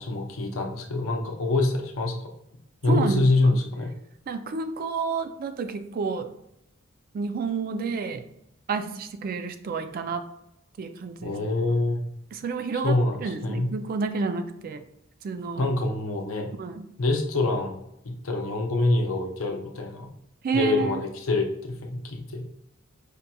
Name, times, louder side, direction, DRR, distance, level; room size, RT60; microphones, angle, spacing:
voice 1, 0.0-2.1 2.8-3.9 11.2-12.0 12.8-13.7 15.6-16.5 17.0-20.1 20.5-22.4, left 2 dB, 80° left, 3 dB, 0.6 m, -25 dB
voice 2, 2.9-3.6 4.3-6.3 7.1-8.2 8.7-10.2 10.8-11.4 12.3-14.8 15.2-15.6 16.6-16.9 20.4-21.0, right 4 dB, 45° right, 9 dB, 0.3 m, -30 dB
5.1 x 2.8 x 2.2 m, 0.81 s
head